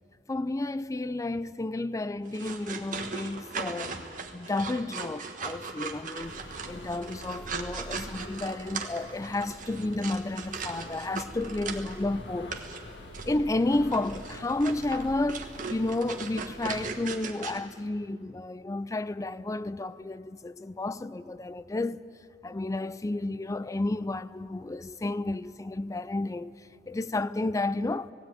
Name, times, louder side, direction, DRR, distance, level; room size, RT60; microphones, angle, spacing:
voice 1, 0.3-4.0 4.3-6.4 6.7-12.5 13.2-22.0 22.4-28.1, left 2 dB, 20° left, 0.4 m, -31 dB
sound 1, 2.3-12.0 12.5-12.8 13.1-13.3 13.9-17.6, right 5 dB, 45° right, 1.4 m, -38 dB
sound 2, 6.2-16.9, equal, 75° left, 1.9 m, -45 dB
19.0 x 16.0 x 9.3 m
head